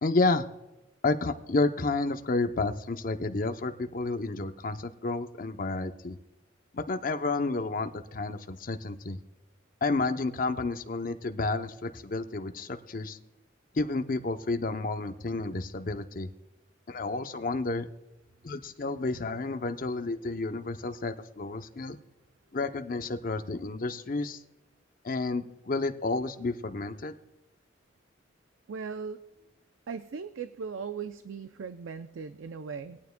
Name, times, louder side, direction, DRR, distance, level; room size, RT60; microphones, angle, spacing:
voice 1, 0.0-0.5 1.0-6.2 6.7-9.2 9.8-13.2 13.7-16.3 16.9-17.9 18.4-22.0 22.5-24.4 25.0-27.1, left 3 dB, 45° left, 9 dB, 0.6 m, -30 dB
voice 2, 28.7-29.2 29.9-33.0, right 5 dB, 75° right, 11 dB, 0.4 m, -38 dB
20.0 x 9.3 x 2.2 m, 1.0 s
head